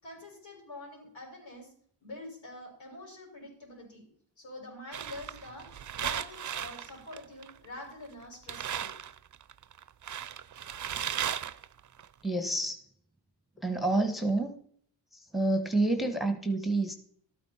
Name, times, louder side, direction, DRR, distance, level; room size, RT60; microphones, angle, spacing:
voice 1, 0.0-1.7 2.0-4.1 4.4-5.7 6.0-9.0, left 2 dB, 75° left, -1 dB, 6.3 m, -46 dB
sound 1, 4.9-7.8 8.1-8.2 8.5-12.1, right 9 dB, 40° right, 0.6 m, -36 dB
voice 2, 12.2-12.9 13.6-14.6 15.1-16.9, right 2 dB, ahead, 7 dB, 1.2 m, -28 dB
13.0 x 9.0 x 4.3 m, 0.63 s
cardioid pair, 70°, 47 cm